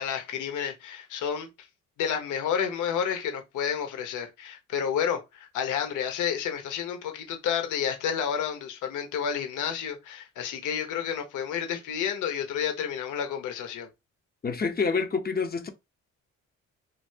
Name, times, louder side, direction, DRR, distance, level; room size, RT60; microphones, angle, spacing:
voice 1, 0.0-1.5 2.0-13.9, left 8 dB, 85° left, 1.0 m, -30 dB
voice 2, 14.4-15.7, left 5 dB, 30° left, 0.7 m, -27 dB
3.2 x 2.7 x 2.7 m
cardioid pair, 90°, 30 cm